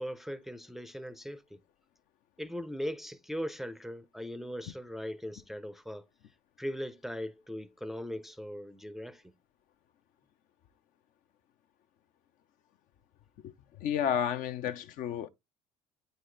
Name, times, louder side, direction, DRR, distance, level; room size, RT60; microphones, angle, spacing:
voice 1, 0.0-1.6 2.4-6.1 6.6-9.3, equal, ahead, 0.5 m, -39 dB
voice 2, 13.8-15.3, left 9 dB, 60° left, 0.6 m, -31 dB
9.0 x 4.1 x 3.2 m
hypercardioid pair, 65°, 16 cm